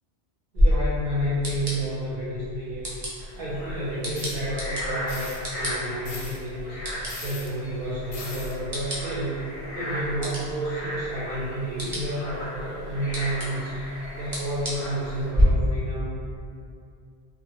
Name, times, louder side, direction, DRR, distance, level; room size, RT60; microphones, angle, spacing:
voice 1, 0.5-2.9 3.3-9.5 9.7-13.8 14.1-16.1, right 1 dB, 65° right, -9 dB, 0.7 m, -30 dB
sound 1, 0.6-15.4, equal, 40° right, 0.3 m, -32 dB
sound 2, 3.2-15.3, left 1 dB, 85° left, 0.9 m, -38 dB
sound 3, 4.1-4.4 5.1-5.4 6.0-6.4 7.1-7.5 8.1-8.5, left 3 dB, 55° left, 0.5 m, -39 dB
2.1 x 2.0 x 2.8 m, 2.4 s
omnidirectional pair, 1.1 m